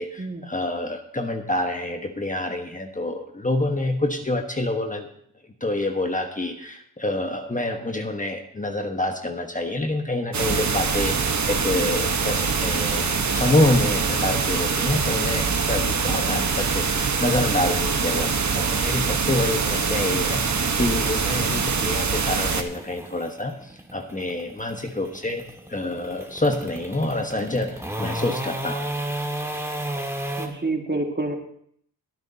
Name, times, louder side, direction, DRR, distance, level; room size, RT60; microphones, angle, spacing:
voice 1, 0.0-5.1 5.6-25.4 25.7-28.9, left 2 dB, 20° left, 4 dB, 1.3 m, -27 dB
sound 1, 10.3-22.6, right 5 dB, 45° right, 1.3 m, -24 dB
sound 2, 22.4-30.5, right 1 dB, 5° right, 1.9 m, -33 dB
voice 2, 30.4-31.4, right 2 dB, 25° right, 3 dB, 2.0 m, -27 dB
21.5 x 9.1 x 2.8 m, 0.67 s
cardioid pair, 60°, 39 cm